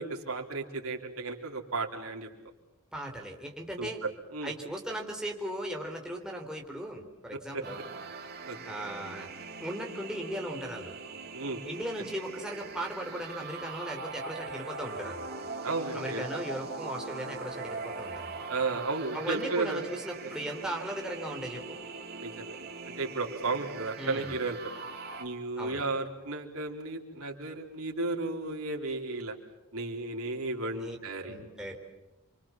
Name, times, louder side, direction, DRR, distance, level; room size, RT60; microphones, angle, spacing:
voice 1, 0.0-2.3 3.8-3.9 4.3-4.5 7.5-7.6 8.5-8.6 11.3-11.6 15.6-16.2 18.5-19.8 22.2-22.5 23.0-24.6 25.2-29.3 29.7-31.4, right 3 dB, 75° right, 2 dB, 4.1 m, -33 dB
voice 2, 2.9-4.0 4.4-7.8 8.7-9.3 9.6-10.9 11.6-15.3 15.9-18.4 19.1-21.8 24.0-24.3 25.6-25.8 30.7-31.0 31.2-31.8, right 1 dB, 5° right, 0 dB, 4.1 m, -37 dB
sound 1, 7.6-25.2, right 3 dB, 45° right, 2.8 m, -41 dB
29.5 x 25.0 x 7.4 m, 0.99 s
head